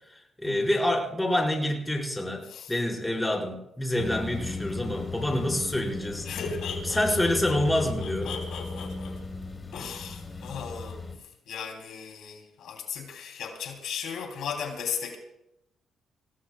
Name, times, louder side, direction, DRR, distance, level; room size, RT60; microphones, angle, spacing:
voice 1, 0.4-6.3 6.9-8.3, left 1 dB, 10° left, 0 dB, 4.7 m, -27 dB
voice 2, 2.4-2.7 6.2-9.2 9.7-11.1 11.5-15.2, left 6 dB, 75° left, 2 dB, 3.0 m, -37 dB
sound 1, 4.0-11.2, left 4 dB, 25° left, 3.9 m, -36 dB
25.5 x 17.5 x 2.3 m, 0.83 s
cardioid pair, 90°, 0 cm